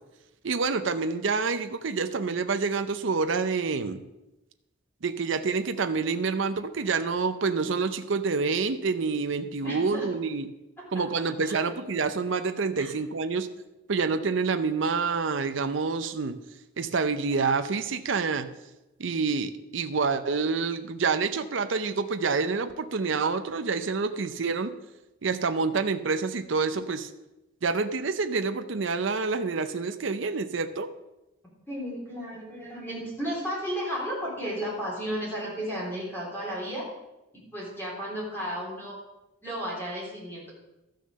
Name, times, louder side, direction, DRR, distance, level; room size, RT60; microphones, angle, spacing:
voice 1, 0.4-4.0 5.0-10.5 10.9-13.5 13.9-16.4 16.8-18.5 19.0-24.7 25.2-27.1 27.6-30.9, right 4 dB, 65° right, 9 dB, 0.6 m, -27 dB
voice 2, 9.6-10.1 10.8-11.0 11.4-11.6 12.8-12.9 31.7-36.9 37.3-39.0 39.4-40.5, equal, 10° left, -6 dB, 3.5 m, -34 dB
13.0 x 6.5 x 6.6 m, 0.98 s
head